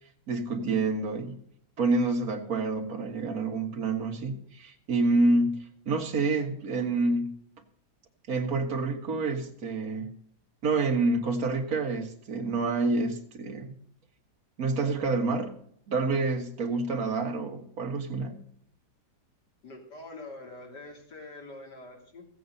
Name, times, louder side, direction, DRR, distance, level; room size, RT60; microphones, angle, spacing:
voice 1, 0.3-1.4 1.8-7.4 8.3-10.1 10.6-13.7 14.6-15.5 15.9-18.4, right 3 dB, 60° right, 4 dB, 2.0 m, -28 dB
voice 2, 19.6-22.2, left 2 dB, 85° left, 0 dB, 3.4 m, -45 dB
14.5 x 8.5 x 5.4 m, 0.66 s
omnidirectional pair, 1.8 m